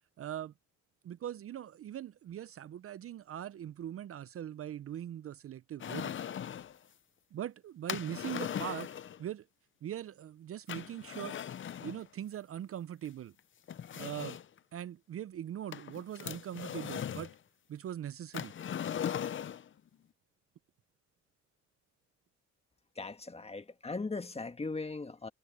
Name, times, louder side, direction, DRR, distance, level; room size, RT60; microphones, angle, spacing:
voice 1, 0.2-0.5 1.0-6.2 7.3-8.9 9.2-9.5 9.8-11.4 11.8-13.3 13.9-14.4 14.7-17.3 17.7-18.5, right 11 dB, 50° right, 0.5 m, -41 dB
sound 1, 5.8-6.8 7.9-9.2 10.7-12.0 13.0-13.1 13.7-14.6 15.7-17.3 18.3-19.7, left 9 dB, 40° left, 0.6 m, -39 dB
voice 2, 22.9-25.3, left 3 dB, 20° left, 1.5 m, -39 dB
cardioid pair, 90°, 30 cm